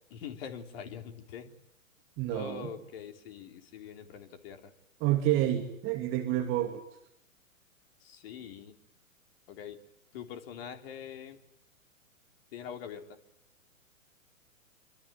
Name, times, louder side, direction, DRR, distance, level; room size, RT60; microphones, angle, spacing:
voice 1, 0.1-1.5 2.3-4.7 8.0-8.7 9.5-9.8 10.1-11.4 12.5-13.2, left 8 dB, 45° left, 7 dB, 3.5 m, -44 dB
voice 2, 2.2-2.7 5.0-6.8, right 13 dB, 30° right, 6 dB, 2.6 m, -29 dB
26.5 x 24.5 x 9.0 m, 0.79 s
figure-of-eight pair, 115°, 41 cm